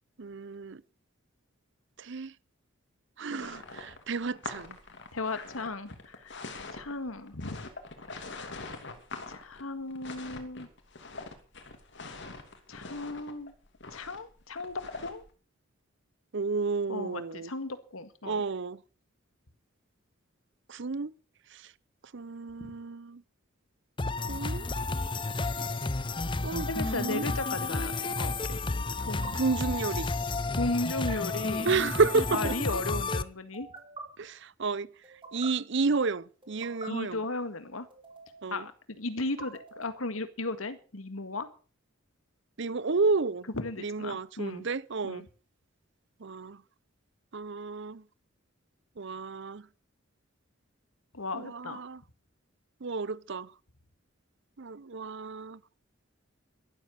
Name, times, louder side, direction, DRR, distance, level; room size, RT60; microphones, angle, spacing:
voice 1, 0.2-0.8 2.0-2.3 3.2-4.8 16.3-17.5 18.2-18.8 20.7-21.1 21.5-21.7 22.1-23.2 24.3-24.7 26.4-27.3 29.3-30.1 31.6-32.5 34.2-34.9 35.3-37.2 38.4-38.7 42.6-43.5 43.8-45.2 46.2-46.6 47.3-48.0 49.0-49.7 51.3-52.0 52.8-53.5 54.6-55.6, right 4 dB, 60° right, 0.7 m, -31 dB
sound 1, 3.4-15.3, left 3 dB, 60° left, 2.8 m, -44 dB
voice 2, 5.1-6.3 6.7-7.6 9.3-10.7 12.7-13.5 13.9-15.2 16.9-18.4 22.6-22.7 26.7-28.6 29.0-29.4 30.5-31.7 32.3-33.7 36.9-37.9 38.5-41.5 43.5-44.6 45.0-45.3 51.1-51.8, left 2 dB, 90° left, 1.9 m, -35 dB
sound 2, 24.0-33.2, left 3 dB, 25° left, 0.7 m, -32 dB
sound 3, 25.4-25.6 27.4-27.7 29.0-29.3 30.9-31.2 32.3-32.8 33.5-34.0 35.0-35.5 36.4-36.9 37.9-38.5 39.2-40.0, right 3 dB, 25° right, 3.4 m, -46 dB
13.0 x 13.0 x 6.5 m
head